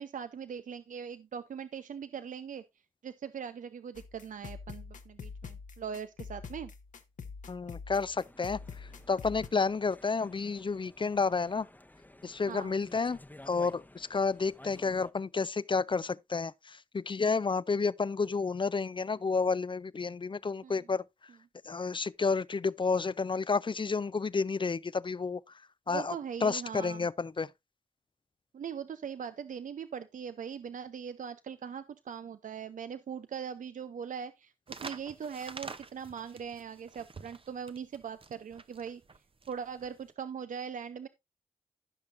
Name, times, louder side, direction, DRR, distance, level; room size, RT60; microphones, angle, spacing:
voice 1, 0.0-2.6 3.0-6.7 12.5-12.8 20.6-20.8 25.9-27.1 28.5-39.0 39.5-41.1, right 7 dB, 70° right, 0.6 m, -41 dB
sound 1, 3.9-9.5, left 5 dB, 65° left, 1.1 m, -45 dB
voice 2, 7.5-11.7 12.2-13.2 13.5-21.0 21.7-25.4 25.9-26.2 26.4-27.5, left 4 dB, 35° left, 0.5 m, -31 dB
sound 2, 8.1-15.1, left 1 dB, 10° left, 0.9 m, -54 dB
sound 3, 34.7-40.1, right 4 dB, 40° right, 0.8 m, -47 dB
15.5 x 5.8 x 2.6 m
cardioid pair, 40°, 14 cm